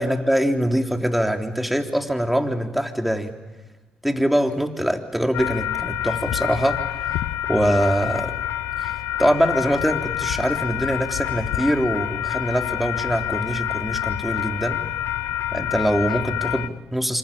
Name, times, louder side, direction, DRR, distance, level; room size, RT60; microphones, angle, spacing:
voice 1, 0.0-3.4 4.0-6.8 7.5-8.4 8.8-8.9 9.2-14.8 15.5-17.2, equal, 5° right, 4 dB, 3.7 m, -23 dB
sound 1, 5.3-16.7, left 12 dB, 80° left, 0.8 m, -27 dB
27.5 x 26.0 x 7.3 m, 1.3 s
hypercardioid pair, 50°, 4 cm